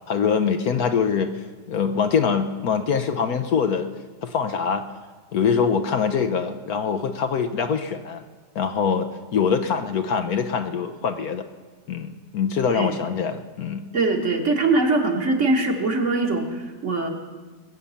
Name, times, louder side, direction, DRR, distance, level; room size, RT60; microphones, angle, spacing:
voice 1, 0.1-3.9 4.2-4.9 5.3-8.2 8.5-11.4 11.9-13.8, left 6 dB, 65° left, 8 dB, 1.2 m, -24 dB
voice 2, 13.9-17.1, right 3 dB, 45° right, 3 dB, 1.7 m, -22 dB
21.0 x 8.7 x 7.0 m, 1.4 s
omnidirectional pair, 1.9 m